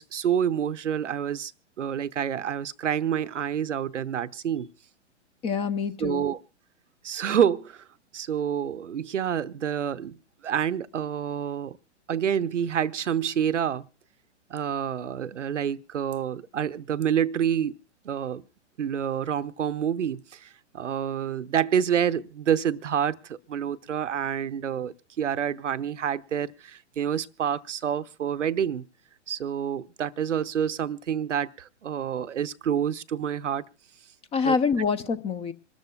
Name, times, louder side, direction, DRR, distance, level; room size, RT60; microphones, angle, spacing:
voice 1, 0.0-1.5 1.8-4.7 6.0-6.4 7.0-7.8 8.1-10.2 10.4-11.8 12.1-13.9 14.5-17.8 18.0-18.4 18.8-20.5 20.7-28.8 29.3-33.6 34.4-34.6, right 8 dB, 85° right, 0.7 m, -28 dB
voice 2, 5.4-6.2 34.3-35.5, left 5 dB, 15° left, 0.6 m, -26 dB
26.5 x 13.5 x 2.3 m
hypercardioid pair, 115°, 36 cm